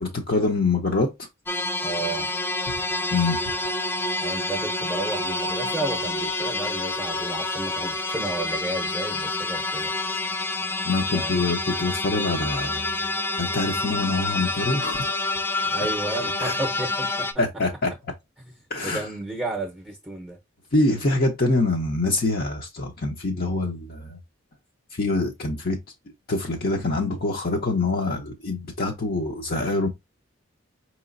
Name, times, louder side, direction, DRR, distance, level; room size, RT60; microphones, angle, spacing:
voice 1, 0.0-1.3 2.7-2.8 3.1-3.4 10.8-12.8 13.3-15.3 16.4-16.5 17.4-17.9 18.7-19.1 20.7-24.2 24.9-25.8 26.3-29.9, left 2 dB, 50° left, 0.7 m, -25 dB
sound 1, 1.5-17.3, left 2 dB, 10° left, 0.3 m, -28 dB
voice 2, 1.8-2.3 4.2-9.9 11.1-11.4 15.7-17.3 18.4-18.5 18.8-20.4, right 2 dB, 5° right, 0.7 m, -32 dB
4.9 x 3.0 x 2.5 m
head